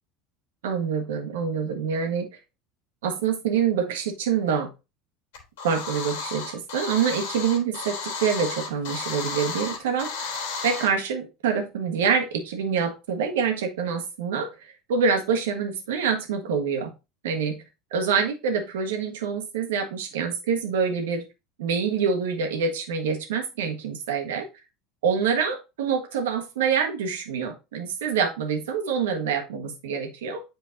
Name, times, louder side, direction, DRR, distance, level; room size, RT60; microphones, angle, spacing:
voice 1, 0.6-2.4 3.0-4.7 5.6-16.9 17.2-17.6 17.9-21.3 21.6-24.5 25.0-30.4, right 6 dB, 75° right, 4 dB, 1.4 m, -26 dB
sound 1, 5.3-10.9, left 4 dB, 70° left, 2.6 m, -33 dB
8.2 x 4.5 x 2.7 m, 0.27 s
hypercardioid pair, 80°, 0 cm